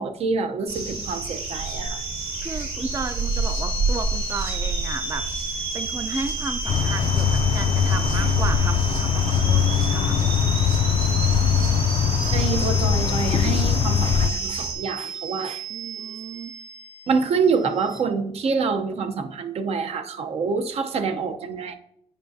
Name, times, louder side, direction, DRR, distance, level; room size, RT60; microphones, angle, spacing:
voice 1, 0.0-2.0 8.1-8.3 12.3-15.6 16.0-16.1 17.1-21.7, right 5 dB, 65° right, 8 dB, 0.7 m, -26 dB
sound 1, 0.7-14.7, right 3 dB, 45° right, 2.4 m, -30 dB
sound 2, 1.2-18.0, right 1 dB, 80° right, 3.0 m, -35 dB
voice 2, 2.4-5.3 5.5-10.4 15.7-16.5, right 4 dB, 25° right, 9 dB, 0.4 m, -34 dB
sound 3, 6.7-14.3, left 8 dB, 50° left, 0.3 m, -21 dB
8.9 x 5.8 x 2.7 m, 0.71 s
cardioid pair, 130°, 12 cm